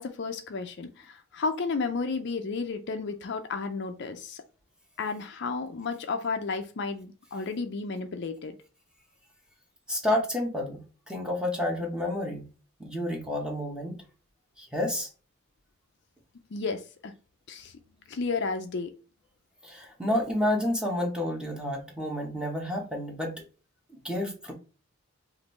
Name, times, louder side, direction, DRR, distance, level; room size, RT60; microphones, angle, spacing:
voice 1, 0.0-4.4 5.0-8.6 16.5-17.1 17.5-17.7 18.1-18.9, left 4 dB, 55° left, 7 dB, 0.5 m, -32 dB
voice 2, 9.9-10.8 11.1-12.5 12.8-14.0 14.6-15.1 19.6-23.4 24.0-24.5, left 1 dB, 5° right, 1 dB, 1.0 m, -30 dB
5.1 x 2.6 x 3.1 m, 0.36 s
head